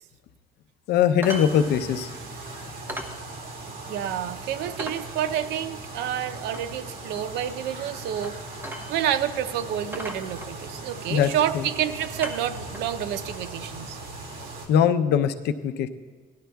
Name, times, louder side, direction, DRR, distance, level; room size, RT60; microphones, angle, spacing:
voice 1, 0.9-2.1 11.1-11.6 14.7-15.9, left 8 dB, 75° left, 10 dB, 0.6 m, -21 dB
sound 1, 1.2-1.5 1.8-1.9 2.3-2.4 2.9-3.2 3.6-3.7 4.1-4.2 4.8-5.0 6.5-6.7 8.2-8.4 8.6-9.2 9.5-9.6 9.9-10.9 11.6-11.8 12.2-12.9 13.9-14.0, right 1 dB, 15° right, 1.1 m, -37 dB
sound 2, 1.2-14.7, right 2 dB, 55° right, 2.2 m, -39 dB
voice 2, 3.9-8.4 8.9-14.0, right 10 dB, 90° right, 12 dB, 0.6 m, -29 dB
18.0 x 11.5 x 2.3 m, 1.4 s
cardioid pair, 110°, 17 cm